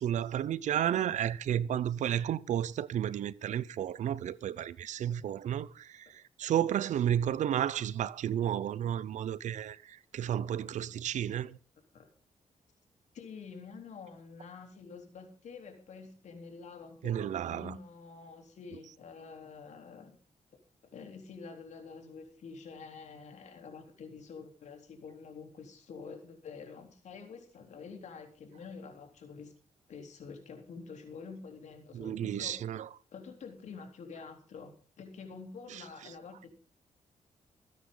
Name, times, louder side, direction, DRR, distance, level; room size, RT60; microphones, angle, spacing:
voice 1, 0.0-11.6 17.0-17.7 31.9-32.9 35.7-36.1, right 10 dB, 80° right, 0.7 m, -32 dB
voice 2, 13.1-20.2 20.9-29.5 29.9-32.6 33.1-36.6, left 5 dB, 70° left, 3.8 m, -47 dB
25.0 x 9.8 x 4.0 m
cardioid pair, 100°, 12 cm